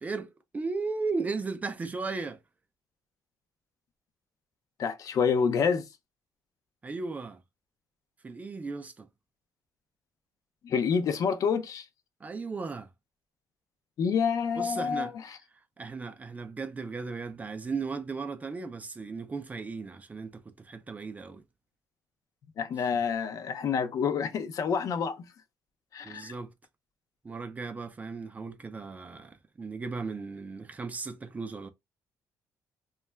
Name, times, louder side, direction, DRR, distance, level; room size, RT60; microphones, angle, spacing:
voice 1, 0.0-2.4 6.8-7.4 8.2-9.1 12.2-12.9 14.5-15.1 15.8-21.4 26.0-26.5 27.2-31.7, right 4 dB, 20° right, 0.3 m, -36 dB
voice 2, 4.8-5.9 10.6-11.8 14.0-15.1 22.6-25.3 25.9-26.3, left 6 dB, 55° left, 0.4 m, -28 dB
2.2 x 2.0 x 3.2 m
cardioid pair, 120°, 7 cm